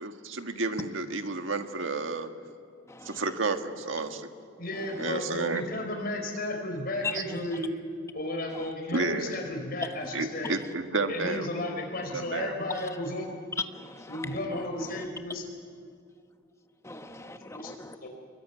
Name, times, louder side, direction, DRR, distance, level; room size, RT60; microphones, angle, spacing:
voice 1, 0.0-2.3 3.0-4.3 5.0-5.6 7.1-7.2 8.9-9.3 10.1-11.5 12.1-12.5, right 3 dB, 70° right, 6 dB, 1.6 m, -31 dB
voice 2, 2.9-3.2 7.0-7.1 13.7-14.3 16.8-17.9, left 4 dB, 15° left, 7 dB, 1.2 m, -39 dB
voice 3, 4.6-7.7 8.1-10.5 11.1-13.3 14.1-15.4 17.5-17.7 18.0-18.1, left 1 dB, 50° left, 2 dB, 4.8 m, -34 dB
26.0 x 22.0 x 9.5 m, 2.3 s
head